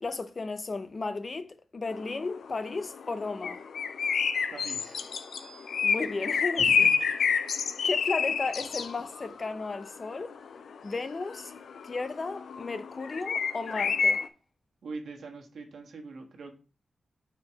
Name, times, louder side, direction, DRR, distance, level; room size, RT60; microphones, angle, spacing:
voice 1, 0.0-3.6 5.8-6.9 7.8-10.4 10.8-11.5 11.8-14.2, left 3 dB, 35° left, 0.5 m, -34 dB
sound 1, 1.9-14.3, left 6 dB, 85° left, 0.5 m, -29 dB
voice 2, 4.5-5.0 6.6-7.2 14.8-16.6, right 3 dB, 90° right, 1.3 m, -42 dB
sound 2, 4.7-6.4, right 4 dB, ahead, 1.5 m, -57 dB
4.9 x 4.7 x 4.5 m
wide cardioid pair, 165°, 0 cm